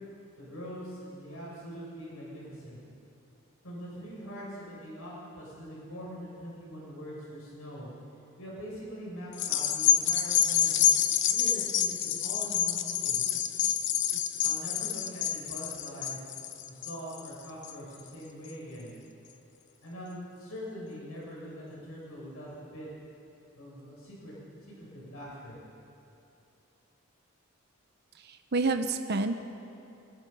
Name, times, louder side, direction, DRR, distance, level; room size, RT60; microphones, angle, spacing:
voice 1, 0.4-2.8 3.6-7.9 8.4-10.9 11.3-13.2 14.4-16.2 16.7-18.9 19.8-22.9 23.6-24.3 24.6-25.6, equal, 85° left, -5 dB, 6.9 m, -43 dB
sound 1, 9.3-18.0 18.5-18.6, left 9 dB, 60° left, 1.0 m, -28 dB
voice 2, 28.2-29.4, right 3 dB, 50° right, 7 dB, 0.8 m, -28 dB
26.0 x 19.5 x 5.5 m, 2.9 s
head